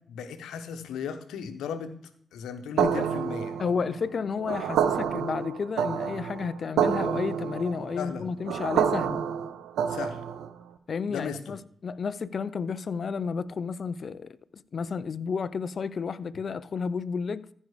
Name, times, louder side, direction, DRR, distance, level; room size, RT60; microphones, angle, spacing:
voice 1, 0.1-1.9 2.3-3.6 8.0-8.2 9.9-10.2 11.1-11.4, left 7 dB, 90° left, 1.0 m, -36 dB
voice 2, 2.8-3.1 3.6-9.3 10.9-17.5, left 5 dB, 55° left, 0.6 m, -32 dB
sound 1, 2.8-10.6, right 8 dB, 90° right, 0.8 m, -28 dB
14.5 x 5.4 x 4.9 m
cardioid pair, 60°, 0 cm